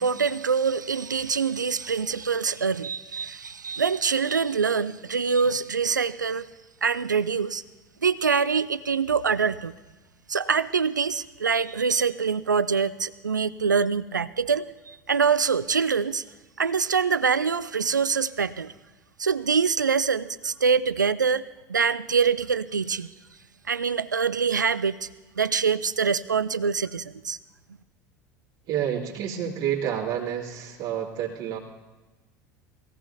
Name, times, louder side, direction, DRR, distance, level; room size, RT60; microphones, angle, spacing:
voice 1, 0.0-6.5 6.8-7.6 8.0-9.7 10.3-16.2 16.6-18.7 19.2-21.4 21.7-23.1 23.7-25.1 25.4-27.4, right 5 dB, 85° right, 16 dB, 0.4 m, -24 dB
voice 2, 28.7-31.6, right 9 dB, 50° right, -6 dB, 2.4 m, -29 dB
21.0 x 16.0 x 2.8 m, 1.2 s
figure-of-eight pair, 70°, 10 cm